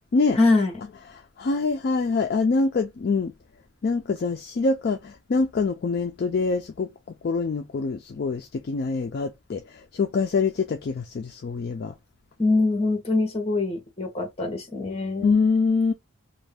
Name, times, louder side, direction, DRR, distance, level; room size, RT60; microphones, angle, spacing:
voice 1, 0.4-0.7 12.4-15.4, left 3 dB, 30° left, 0.9 m, -23 dB
voice 2, 1.1-3.3 3.8-6.9 7.2-11.9 15.2-15.9, left 4 dB, 50° left, 0.3 m, -25 dB
2.6 x 2.2 x 3.3 m
head